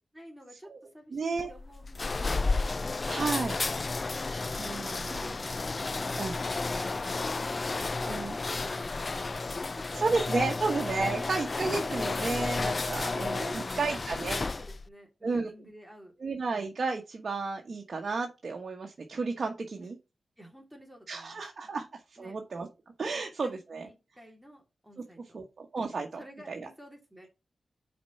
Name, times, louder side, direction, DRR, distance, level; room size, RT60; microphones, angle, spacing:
voice 1, 0.1-3.1 3.8-4.2 5.2-9.6 10.5-10.6 11.1-11.4 11.8-12.1 13.1-16.1 19.8-19.9 20.4-21.4 22.2-22.4 23.1-25.4 26.2-27.3, equal, 5° right, 0 dB, 2.8 m, -50 dB
voice 2, 1.1-1.5 3.1-3.6 4.6-5.2 6.2-6.3 8.1-8.4 9.9-14.4 15.2-15.5 16.2-20.0 21.1-21.9 22.2-22.7 23.0-23.8 25.3-26.2 26.5-26.6, right 4 dB, 65° right, 1 dB, 1.1 m, -32 dB
sound 1, 1.4-14.9, left 3 dB, 50° left, 0.3 m, -32 dB
5.9 x 4.4 x 5.5 m, 0.27 s
cardioid pair, 50°, 0 cm